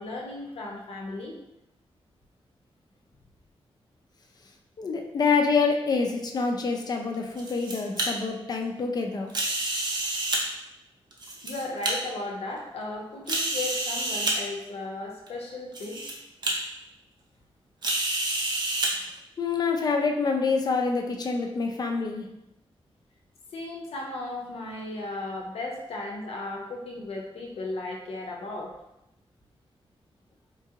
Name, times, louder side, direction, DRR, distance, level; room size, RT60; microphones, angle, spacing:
voice 1, 0.0-1.4 11.4-16.2 23.5-28.7, left 2 dB, 80° left, -1 dB, 0.7 m, -35 dB
voice 2, 4.8-9.3 19.4-22.3, left 4 dB, 40° left, 2 dB, 0.4 m, -26 dB
sound 1, 7.1-8.1 9.3-10.4 11.1-11.9 12.6-12.7 13.3-14.3 15.3-15.4 15.7-16.1 16.4-16.5 17.8-18.9, right 2 dB, 45° right, 0.6 m, -28 dB
3.7 x 2.5 x 2.7 m, 0.88 s
wide cardioid pair, 150°, 10 cm